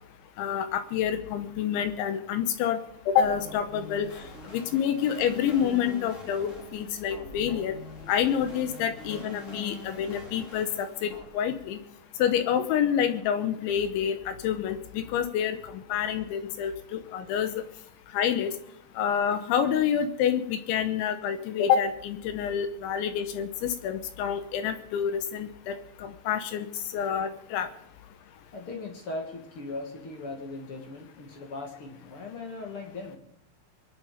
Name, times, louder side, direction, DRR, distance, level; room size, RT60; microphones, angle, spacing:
voice 1, 0.4-4.1 4.5-7.8 8.1-11.8 12.2-17.5 18.1-18.5 19.0-26.7 26.9-27.7, left 8 dB, 75° left, 10 dB, 3.2 m, -28 dB
sound 1, 3.2-11.2, left 1 dB, 25° left, 1.8 m, -44 dB
voice 2, 28.5-33.2, left 2 dB, 45° left, 2 dB, 1.8 m, -38 dB
22.5 x 10.5 x 5.0 m, 0.77 s
omnidirectional pair, 5.7 m